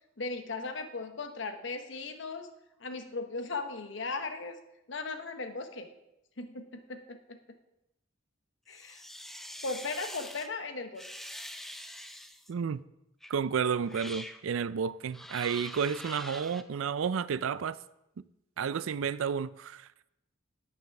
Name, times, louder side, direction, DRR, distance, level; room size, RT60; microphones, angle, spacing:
voice 1, 0.2-2.5 2.8-4.6 4.9-5.9 6.4-7.4 8.7-9.0 9.6-11.0, left 3 dB, 65° left, 0.9 m, -37 dB
sound 1, 8.7-10.5 10.9-12.5 13.2-13.4 13.8-14.4 15.1-16.6, equal, ahead, 0.4 m, -44 dB
voice 2, 12.5-12.8 13.3-17.8 18.6-19.9, right 6 dB, 80° right, 0.4 m, -31 dB
9.9 x 6.1 x 5.9 m
head